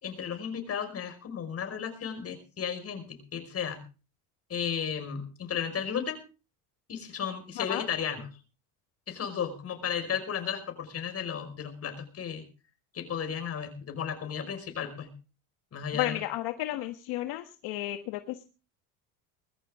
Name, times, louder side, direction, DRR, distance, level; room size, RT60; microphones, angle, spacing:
voice 1, 0.0-3.8 4.5-6.2 6.9-8.3 9.1-12.5 12.9-15.1 15.7-16.2, left 7 dB, 35° left, 7 dB, 5.4 m, -34 dB
voice 2, 7.6-7.9 15.9-18.4, left 15 dB, 70° left, 7 dB, 1.5 m, -33 dB
21.0 x 14.5 x 3.6 m, 0.35 s
supercardioid pair, 110°, 39 cm